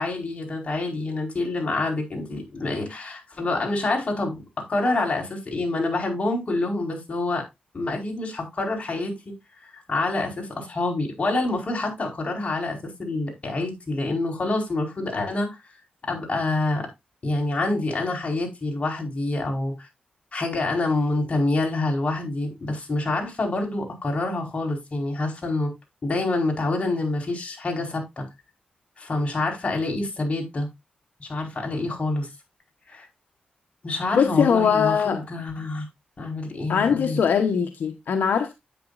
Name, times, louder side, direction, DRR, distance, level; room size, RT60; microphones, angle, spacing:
voice 1, 0.0-4.4 4.7-7.4 7.7-9.1 9.6-15.5 16.1-16.8 17.2-19.9 20.3-25.7 26.0-28.2 29.0-30.7 31.2-32.3 32.9-33.1 33.8-35.9 36.2-37.2, left 2 dB, 40° left, 4.7 m, -27 dB
voice 2, 34.1-35.2 36.7-38.5, left 7 dB, 75° left, 1.0 m, -21 dB
10.5 x 9.0 x 2.5 m
cardioid pair, 90°, 3 cm